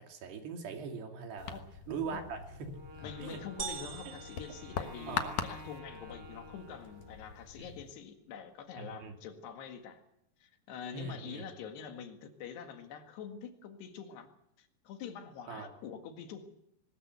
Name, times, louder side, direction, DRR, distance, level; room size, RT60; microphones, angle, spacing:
voice 1, 0.0-1.6 1.9-2.8 3.2-3.4 5.1-5.4 7.6-7.7 8.8-9.1 10.9-11.4 15.5-15.7, right 5 dB, 75° right, 4 dB, 4.7 m, -41 dB
sound 1, 1.4-7.9, left 7 dB, 60° left, 2.4 m, -43 dB
Wind instrument woodwind instrument, 2.7-7.5, equal, 35° right, 5.9 m, -51 dB
voice 2, 3.0-10.0 10.4-14.3 14.6-16.5, left 7 dB, 80° left, 6 dB, 3.9 m, -46 dB
sound 2, 3.6-5.5, right 6 dB, 55° right, 1.3 m, -44 dB
21.0 x 19.5 x 8.1 m, 0.79 s
omnidirectional pair, 4.8 m